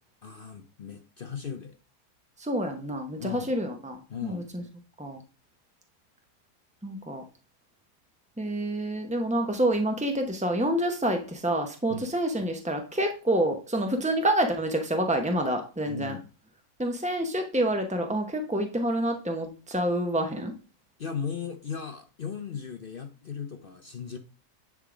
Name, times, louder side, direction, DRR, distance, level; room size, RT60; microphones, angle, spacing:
voice 1, 0.2-1.8 3.2-3.5 4.1-4.5 11.9-12.1 15.9-16.2 21.0-24.2, left 6 dB, 60° left, 0.6 m, -37 dB
voice 2, 2.4-4.6 5.0-5.2 6.8-7.2 8.4-16.2 16.8-20.5, right 1 dB, 10° right, 0.3 m, -28 dB
10.0 x 3.7 x 5.0 m
omnidirectional pair, 1.8 m